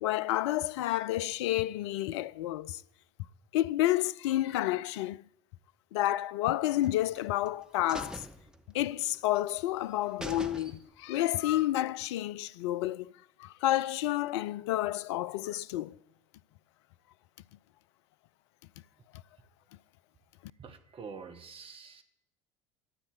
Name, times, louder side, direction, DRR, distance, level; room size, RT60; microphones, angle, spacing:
voice 1, 0.0-2.8 3.5-5.2 5.9-8.2 8.7-13.1 13.4-15.9, left 14 dB, 65° left, 0.5 m, -30 dB
sound 1, 6.8-7.5 7.9-9.2 9.5-9.6 9.9-10.0 10.2-11.1 11.5-11.6, right 1 dB, 5° right, 1.3 m, -43 dB
voice 2, 20.6-22.0, right 5 dB, 35° right, 1.8 m, -46 dB
13.0 x 8.3 x 8.0 m
figure-of-eight pair, 70°, 16 cm